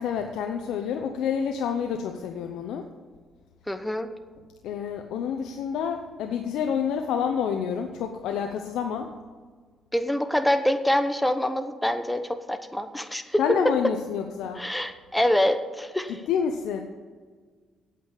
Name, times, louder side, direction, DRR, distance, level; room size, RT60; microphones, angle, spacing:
voice 1, 0.0-2.8 4.6-9.1 13.4-14.6 16.3-16.8, left 7 dB, 85° left, 5 dB, 0.7 m, -28 dB
voice 2, 3.7-4.1 9.9-13.9 14.5-16.3, left 1 dB, 5° left, 9 dB, 1.0 m, -25 dB
8.5 x 8.3 x 8.4 m, 1.5 s
cardioid pair, 90°, 0 cm